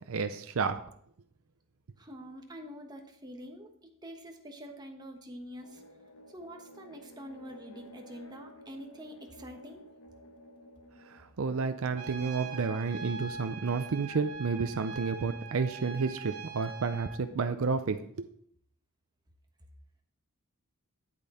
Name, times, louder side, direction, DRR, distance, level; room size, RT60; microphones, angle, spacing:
voice 1, 0.1-0.8 11.1-18.3, right 4 dB, 65° right, 8 dB, 0.5 m, -31 dB
voice 2, 2.0-5.8 6.3-9.9, equal, 20° right, 3 dB, 1.2 m, -46 dB
sound 1, 5.6-12.6, left 1 dB, 85° left, 1.1 m, -52 dB
Trumpet, 12.0-17.2, right 5 dB, 85° right, 1.5 m, -43 dB
8.6 x 8.3 x 4.3 m, 0.65 s
head